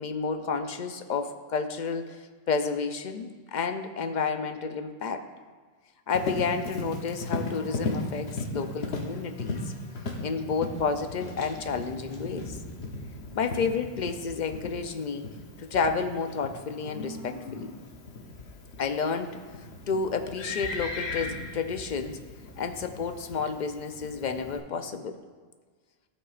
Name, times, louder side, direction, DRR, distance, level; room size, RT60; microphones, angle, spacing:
voice 1, 0.0-5.2 6.1-9.7 10.2-12.6 13.3-15.3 15.6-17.7 18.8-22.2 22.6-25.2, left 5 dB, 55° left, 7 dB, 0.6 m, -31 dB
Livestock farm animals working animals, 6.1-24.6, left 2 dB, 80° left, 1.2 m, -37 dB
15.0 x 5.4 x 2.4 m, 1.5 s
omnidirectional pair, 1.0 m